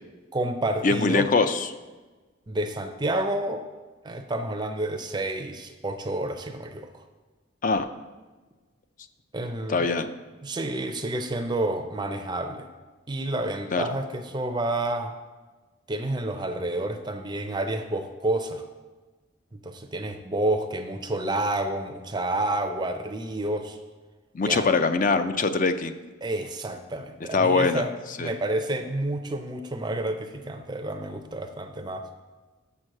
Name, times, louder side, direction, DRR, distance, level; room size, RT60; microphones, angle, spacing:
voice 1, 0.3-1.3 2.5-3.6 4.0-7.0 9.3-9.9 10.4-12.7 13.1-15.1 15.9-18.6 19.5-23.8 24.4-24.7 26.2-27.9 28.2-32.1, right 1 dB, 20° right, 6 dB, 0.5 m, -29 dB
voice 2, 0.8-1.7 7.6-7.9 9.7-10.1 13.7-13.8 24.3-25.9 27.3-27.8 28.2-28.3, left 4 dB, 40° left, 10 dB, 0.4 m, -23 dB
7.1 x 6.1 x 6.4 m, 1.3 s
head